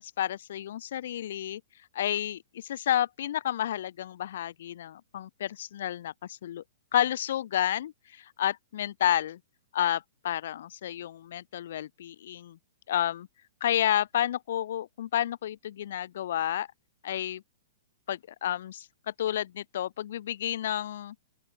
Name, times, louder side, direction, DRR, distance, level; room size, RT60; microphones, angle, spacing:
voice 1, 0.0-1.6 1.9-6.6 6.9-9.4 9.7-12.6 12.9-13.3 13.6-16.7 17.0-17.4 18.1-21.1, left 11 dB, 60° left, 6.1 m, -30 dB
open air
hypercardioid pair, 160°, 0 cm